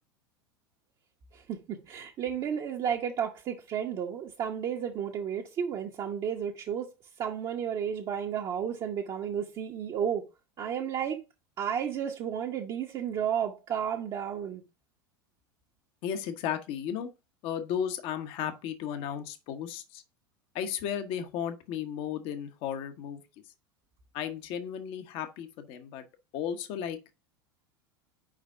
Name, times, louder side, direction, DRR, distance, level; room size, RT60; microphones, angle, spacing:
voice 1, 1.3-6.9 7.2-10.2 10.6-11.2 11.6-14.6, right 8 dB, 35° right, 0.9 m, -32 dB
voice 2, 16.0-17.1 17.4-20.0 20.5-23.2 24.1-26.0 26.3-27.0, left 9 dB, 50° left, 1.0 m, -34 dB
5.1 x 4.9 x 4.6 m
figure-of-eight pair, 80°, 12 cm